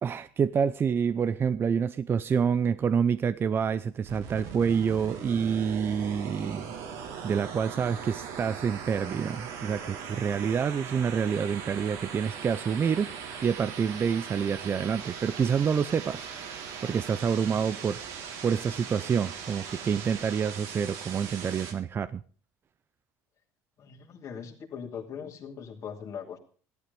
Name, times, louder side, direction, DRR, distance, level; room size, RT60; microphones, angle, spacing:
voice 1, 0.0-6.7 7.2-13.1 13.4-18.0 18.4-22.2, right 7 dB, 30° right, 13 dB, 0.6 m, -27 dB
sound 1, 4.0-21.7, right 7 dB, 80° right, 3.0 m, -40 dB
voice 2, 23.8-26.4, left 7 dB, 45° left, -1 dB, 2.8 m, -40 dB
15.0 x 12.0 x 5.3 m, 0.41 s
supercardioid pair, 105°, 7 cm